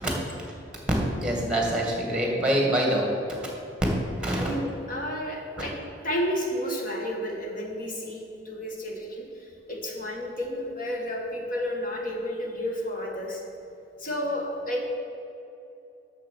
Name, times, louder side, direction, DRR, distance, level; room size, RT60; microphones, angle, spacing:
voice 1, 1.2-3.4 4.2-4.5 5.6-5.7, right 1 dB, 5° right, -1 dB, 2.0 m, -25 dB
voice 2, 4.3-9.3 9.7-13.4 14.0-14.9, equal, 50° left, 0 dB, 1.7 m, -31 dB
8.6 x 6.7 x 7.0 m, 2.8 s
head